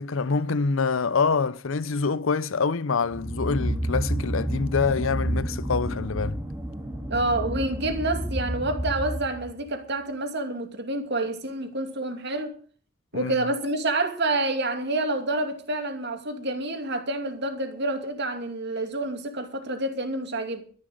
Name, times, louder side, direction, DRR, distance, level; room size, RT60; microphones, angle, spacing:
voice 1, 0.0-6.4 13.1-13.3, left 4 dB, 75° left, 0.7 m, -26 dB
sound 1, 3.1-9.6, right 1 dB, 10° right, 1.9 m, -30 dB
voice 2, 7.1-12.6 13.1-20.6, right 2 dB, 55° right, 2.7 m, -28 dB
13.0 x 11.0 x 6.5 m
head